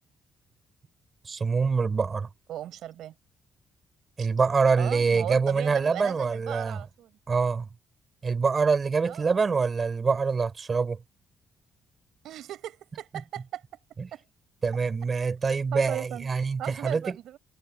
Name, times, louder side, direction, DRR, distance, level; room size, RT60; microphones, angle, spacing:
voice 1, 1.2-2.3 4.2-6.8 7.3-7.7 8.2-11.0 13.1-13.5 14.0-14.1 14.6-17.2, right 5 dB, 35° right, 5.8 m, -25 dB
voice 2, 2.5-3.1 4.2-4.3 4.8-7.2 9.0-9.7 12.2-13.6 14.1-14.3 15.7-16.3 16.6-17.4, right 12 dB, 80° right, 6.0 m, -37 dB
cardioid pair, 90°, 0 cm